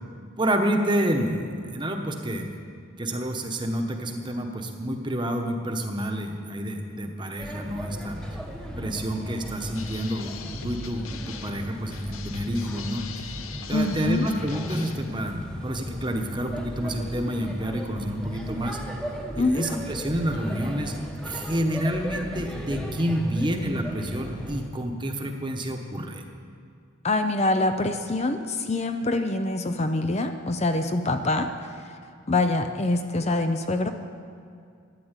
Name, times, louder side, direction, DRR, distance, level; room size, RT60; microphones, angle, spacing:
voice 1, 0.4-2.5 3.0-8.2 8.8-13.3 13.7-18.8 19.5-21.0 21.2-26.2, right 1 dB, 20° right, 4 dB, 1.1 m, -29 dB
Male speech man speaking / Child speech kid speaking / Chatter, 7.4-24.7, equal, 5° left, 1.1 m, -36 dB
sound 1, 9.7-15.3, left 5 dB, 80° left, 0.8 m, -40 dB
voice 2, 13.7-14.3 19.4-19.6 27.0-32.0 32.3-33.9, left 2 dB, 30° left, 7 dB, 0.6 m, -25 dB
12.5 x 10.5 x 8.2 m, 2.3 s
head